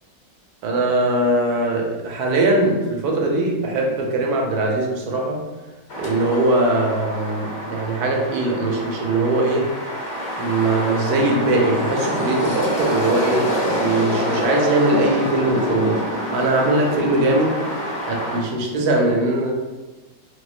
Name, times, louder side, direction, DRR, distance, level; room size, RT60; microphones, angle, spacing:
voice 1, 0.6-5.4 6.0-9.7 10.4-16.0 16.3-17.6 18.1-19.5, right 2 dB, 70° right, 0 dB, 1.0 m, -21 dB
sound 1, 5.9-18.4, equal, 55° left, 0.7 m, -26 dB
4.1 x 2.1 x 2.4 m, 1.2 s
omnidirectional pair, 2.0 m